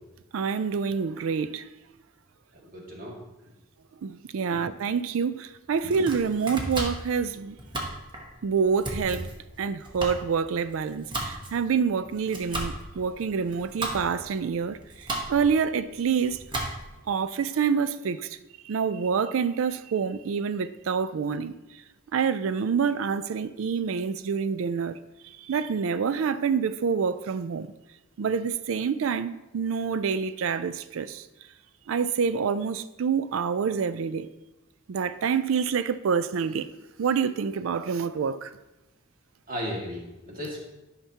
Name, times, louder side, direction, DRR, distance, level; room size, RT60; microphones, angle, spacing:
voice 1, 0.3-1.6 4.0-7.6 8.4-9.3 9.6-14.8 15.3-16.4 17.1-18.2 18.7-21.5 22.1-24.9 25.5-27.7 28.2-31.2 31.9-34.3 34.9-36.7 37.0-38.5, right 6 dB, 70° right, 0.4 m, -27 dB
voice 2, 2.7-3.2 39.5-40.6, equal, 40° right, 1.9 m, -35 dB
Domestic sounds home sounds, 5.7-17.1, right 1 dB, 20° right, 1.1 m, -36 dB
11.0 x 5.8 x 2.8 m
head